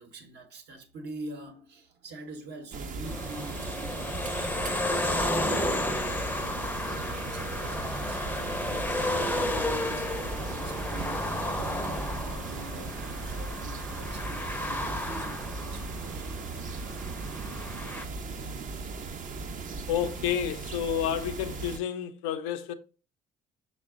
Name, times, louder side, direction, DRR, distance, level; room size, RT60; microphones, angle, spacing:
voice 1, 0.0-5.3 6.9-16.4, right 2 dB, 60° right, 0.9 m, -45 dB
sound 1, 2.7-21.8, right 4 dB, 45° right, 0.6 m, -37 dB
sound 2, 3.0-18.1, left 1 dB, 10° left, 0.5 m, -33 dB
sound 3, 6.9-13.4, right 4 dB, 85° right, 0.7 m, -48 dB
voice 2, 19.9-22.7, left 9 dB, 80° left, 0.4 m, -30 dB
5.9 x 2.0 x 3.5 m
hypercardioid pair, 60°, 19 cm